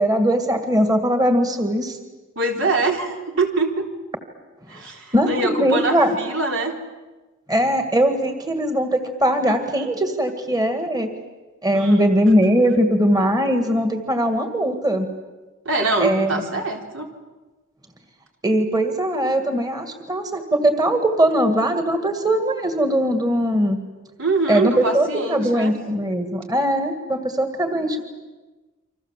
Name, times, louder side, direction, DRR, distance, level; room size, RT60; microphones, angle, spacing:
voice 1, 0.0-2.0 5.1-6.2 7.5-11.1 11.6-15.1 16.0-16.4 18.4-23.8 24.5-28.0, right 1 dB, 20° right, 6 dB, 2.1 m, -20 dB
voice 2, 2.4-3.9 4.7-6.8 11.7-12.3 15.6-17.1 24.2-25.7, right 3 dB, 70° right, 2 dB, 3.9 m, -24 dB
29.0 x 25.5 x 7.6 m, 1.2 s
head